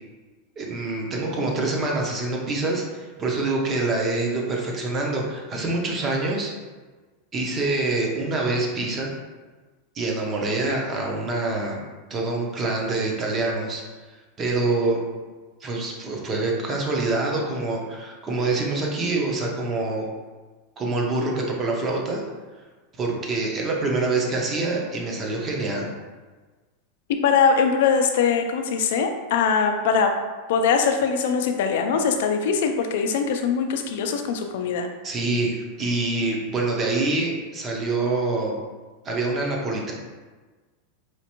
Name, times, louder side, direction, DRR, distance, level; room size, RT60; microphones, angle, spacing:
voice 1, 0.6-6.5 7.3-9.1 9.9-11.8 12.1-13.8 14.4-15.0 15.6-20.1 20.8-22.2 23.0-25.9 35.0-38.6 39.0-39.9, right 2 dB, 20° right, -1 dB, 0.6 m, -25 dB
voice 2, 27.2-30.1 30.5-34.9, left 6 dB, 65° left, 5 dB, 0.4 m, -22 dB
4.4 x 2.5 x 2.9 m, 1.3 s
supercardioid pair, 155°, 0 cm